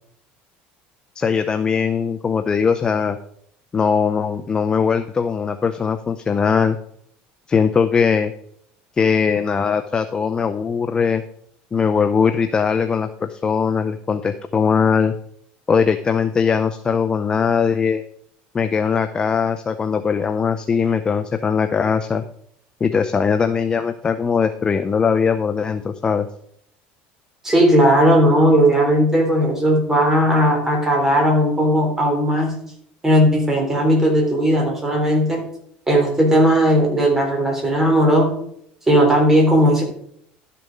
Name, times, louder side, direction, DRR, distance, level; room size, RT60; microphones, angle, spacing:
voice 1, 1.2-3.2 3.7-6.8 7.5-8.3 9.0-11.2 11.7-15.1 15.7-18.0 18.5-22.2 22.8-26.3, left 6 dB, 20° left, 8 dB, 0.5 m, -20 dB
voice 2, 27.4-32.5 33.0-35.4 35.9-38.4 38.9-39.8, equal, 10° right, 1 dB, 3.5 m, -16 dB
12.0 x 6.8 x 5.1 m, 0.68 s
cardioid pair, 140°, 4 cm